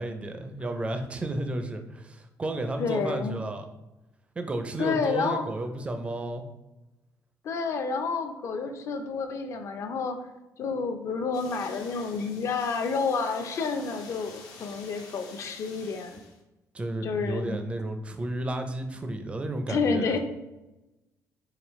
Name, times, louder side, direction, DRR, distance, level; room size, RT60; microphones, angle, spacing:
voice 1, 0.0-3.7 4.4-6.4 16.7-20.2, right 2 dB, 20° right, 6 dB, 0.4 m, -32 dB
voice 2, 2.8-3.4 4.8-5.5 7.4-10.2 10.6-16.2 17.0-17.6 19.7-20.2, left 4 dB, 50° left, 6 dB, 0.5 m, -29 dB
sound 1, 11.3-16.4, left 4 dB, 80° left, 0.8 m, -48 dB
5.0 x 3.0 x 3.1 m, 1.0 s
cardioid pair, 145°, 6 cm